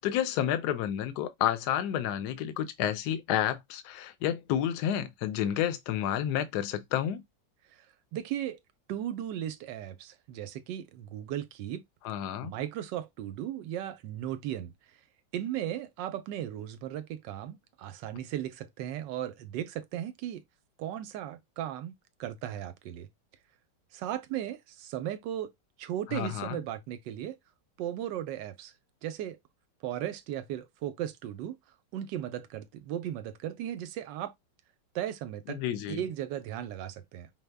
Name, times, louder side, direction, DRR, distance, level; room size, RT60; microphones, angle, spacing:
voice 1, 0.0-7.2 12.0-12.5 26.1-26.6 35.5-36.0, left 10 dB, 70° left, 1.2 m, -30 dB
voice 2, 8.1-8.6 8.9-11.8 12.4-14.7 15.3-20.4 20.8-21.9 22.2-23.1 23.9-25.5 25.8-27.4 27.8-28.7 29.0-29.4 29.8-31.6 31.9-34.3 34.9-35.6 35.9-37.3, right 11 dB, 90° right, 1.3 m, -36 dB
5.3 x 2.1 x 3.4 m
omnidirectional pair, 1.9 m